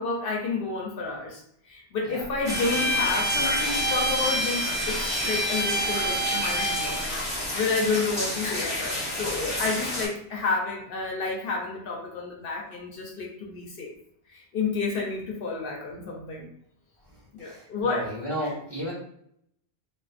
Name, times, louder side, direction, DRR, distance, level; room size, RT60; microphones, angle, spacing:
voice 1, 0.0-7.0 7.3-13.9 14.3-16.5 17.3-18.1 18.4-18.5, left 3 dB, 65° left, -1 dB, 0.7 m, -30 dB
sound 1, 2.4-10.1, left 1 dB, 10° right, 0.8 m, -31 dB
Bowed string instrument, 2.5-7.1, equal, 70° right, 0.9 m, -28 dB
voice 2, 17.4-18.9, equal, 25° right, -8 dB, 1.1 m, -33 dB
2.4 x 2.4 x 2.4 m, 0.69 s
omnidirectional pair, 1.1 m